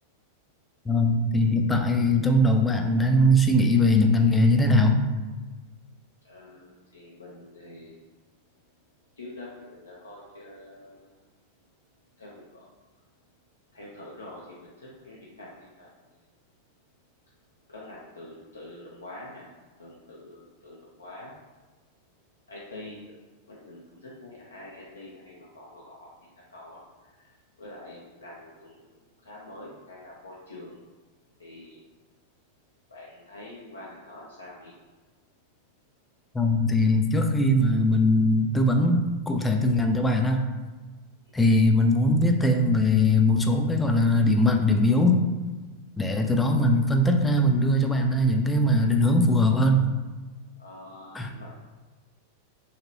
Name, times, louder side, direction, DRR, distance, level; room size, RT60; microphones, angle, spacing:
voice 1, 0.9-5.0 36.3-40.4 41.3-45.2 46.0-49.8 51.1-51.3, left 1 dB, 10° left, 4 dB, 0.3 m, -21 dB
voice 2, 6.2-8.0 9.2-11.2 12.2-12.6 13.7-15.9 17.7-19.5 19.8-21.3 22.5-23.0 23.5-26.1 26.5-28.9 29.2-30.8 31.4-31.8 32.9-34.7 50.6-51.6, left 1 dB, 75° left, -5 dB, 0.5 m, -45 dB
2.9 x 2.7 x 2.6 m, 1.3 s
figure-of-eight pair, 90°, 0 cm